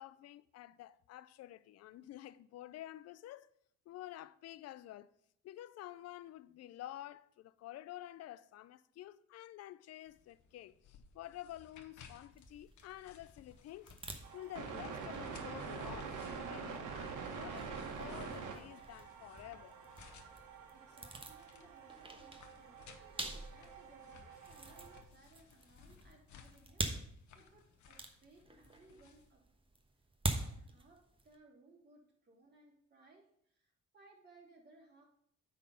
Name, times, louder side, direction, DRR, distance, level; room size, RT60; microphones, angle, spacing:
voice 1, 0.0-3.5 3.9-5.1 5.4-13.9 14.3-19.8, left 14 dB, 55° left, 0.4 m, -50 dB
sound 1, 10.1-29.3, left 6 dB, 75° left, 1.1 m, -61 dB
sound 2, 12.3-31.4, right 2 dB, 15° right, 1.2 m, -46 dB
sound 3, 14.2-25.0, right 5 dB, 85° right, 1.4 m, -46 dB
voice 2, 20.7-26.8 27.3-29.4 30.2-33.2 33.5-35.0, right 3 dB, 35° right, 3.1 m, -63 dB
9.1 x 4.2 x 5.6 m
cardioid pair, 90°, 30 cm